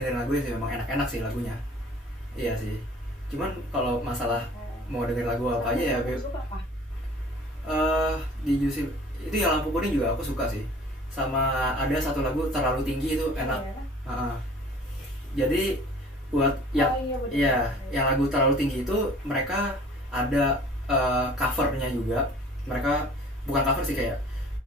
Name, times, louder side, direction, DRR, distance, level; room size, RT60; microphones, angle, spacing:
voice 1, 0.0-1.5 2.4-2.8 3.3-4.5 4.9-6.2 7.7-8.9 9.2-10.6 11.2-13.6 14.1-14.4 15.3-15.8 16.3-16.9 17.3-19.7 20.1-20.6 20.9-22.3 22.7-23.1 23.5-24.1, equal, 5° right, 0.5 m, -26 dB
voice 2, 4.3-5.0 5.6-6.6 13.4-13.9 16.8-17.5 17.8-17.9, left 1 dB, 25° left, 1.0 m, -35 dB
2.5 x 2.2 x 2.3 m
head